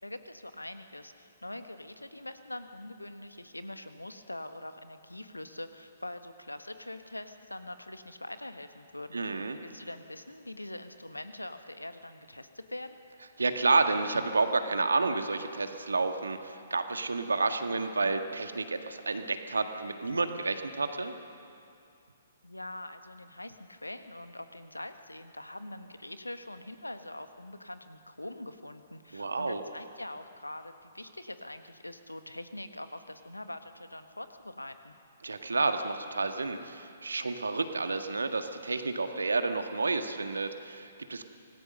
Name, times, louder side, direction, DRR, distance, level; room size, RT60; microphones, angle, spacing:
voice 1, 0.0-13.0 22.4-35.0, left 1 dB, 85° left, 9 dB, 1.4 m, -43 dB
voice 2, 9.1-9.6 13.4-21.1 29.1-29.6 35.2-41.3, right 3 dB, 70° right, 7 dB, 1.7 m, -30 dB
25.5 x 18.5 x 6.7 m, 2.6 s
figure-of-eight pair, 125°, 0 cm